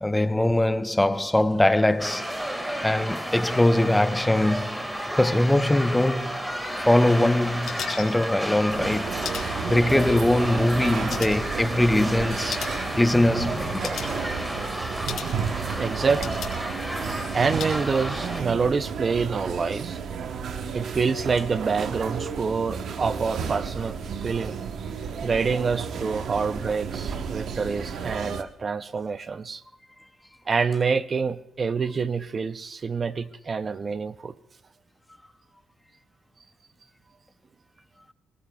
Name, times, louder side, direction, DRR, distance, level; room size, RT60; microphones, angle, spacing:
voice 1, 0.0-2.3 2.8-6.3 6.8-9.1 9.7-12.6 13.0-14.2, left 1 dB, 10° left, 0.5 m, -22 dB
sound 1, 2.0-18.4, equal, 10° right, 1.8 m, -32 dB
sound 2, 6.6-17.7, left 7 dB, 70° left, 3.3 m, -41 dB
sound 3, 8.7-28.4, right 6 dB, 65° right, 0.9 m, -33 dB
voice 2, 15.8-16.4 17.3-20.0 20.7-24.0 24.2-24.6 25.2-29.6 30.5-34.3, right 5 dB, 40° right, 0.5 m, -26 dB
23.0 x 19.5 x 2.3 m
cardioid pair, 90°, 0 cm